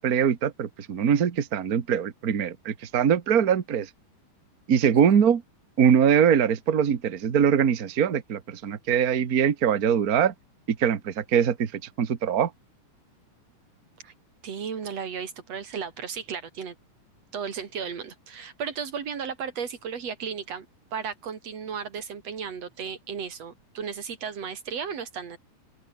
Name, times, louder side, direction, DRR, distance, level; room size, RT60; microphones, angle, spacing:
voice 1, 0.0-3.9 4.7-5.4 5.8-10.3 10.7-12.5, right 8 dB, 90° right, 0.8 m, -22 dB
voice 2, 4.9-5.3 14.0-14.1 14.4-16.8 17.3-20.7 20.9-25.4, right 6 dB, 45° right, 3.7 m, -35 dB
open air
omnidirectional pair, 4.2 m